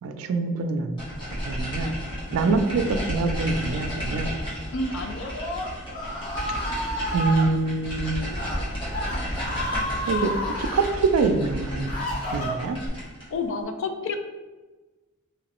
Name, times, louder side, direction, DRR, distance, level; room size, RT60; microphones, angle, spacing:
voice 1, 0.0-1.0 1.4-1.9 2.3-4.3 7.1-8.3 9.9-11.9 12.3-12.8, right 3 dB, 75° right, 7 dB, 0.3 m, -25 dB
sound 1, 1.0-13.3, equal, 25° left, 1.1 m, -32 dB
voice 2, 4.7-5.3 13.3-14.2, left 3 dB, 60° left, 6 dB, 0.4 m, -30 dB
Screaming, 5.1-7.4 8.2-8.6 8.9-10.9 11.5-12.9, equal, 40° left, 0.7 m, -31 dB
3.0 x 2.9 x 2.9 m, 1.2 s
head